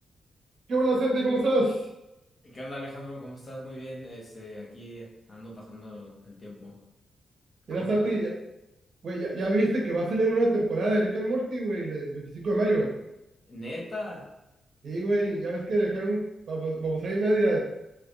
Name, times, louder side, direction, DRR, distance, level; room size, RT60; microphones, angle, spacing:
voice 1, 0.7-1.8 7.7-8.3 9.0-12.9 14.8-17.6, right 2 dB, 55° right, -2 dB, 0.8 m, -26 dB
voice 2, 2.4-6.8 7.7-8.1 13.5-14.3, left 1 dB, 35° left, -2 dB, 0.7 m, -40 dB
3.4 x 2.9 x 2.5 m, 0.90 s
wide cardioid pair, 150°, 0 cm